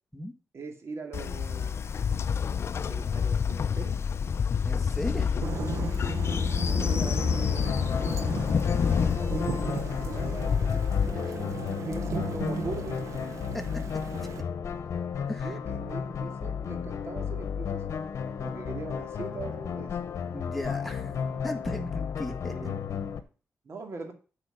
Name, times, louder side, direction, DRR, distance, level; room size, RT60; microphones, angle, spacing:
voice 1, 0.5-2.0 2.9-4.0 6.4-8.2 8.7-11.0 11.7-13.2 15.4-17.9 18.4-20.0 22.4-22.8 23.6-24.1, right 3 dB, 60° right, 4 dB, 2.3 m, -41 dB
Train, 1.1-11.1, left 6 dB, 55° left, 0.5 m, -28 dB
voice 2, 4.6-5.4 11.1-11.4 13.5-13.6 15.3-15.5 20.3-21.2 21.4-22.5, left 1 dB, ahead, 4 dB, 1.6 m, -36 dB
Thunder / Rain, 5.4-14.4, right 5 dB, 85° right, 0.9 m, -37 dB
sound 1, 7.2-23.2, left 7 dB, 75° left, 1.0 m, -34 dB
8.8 x 5.1 x 6.6 m, 0.35 s
cardioid pair, 80°, 5 cm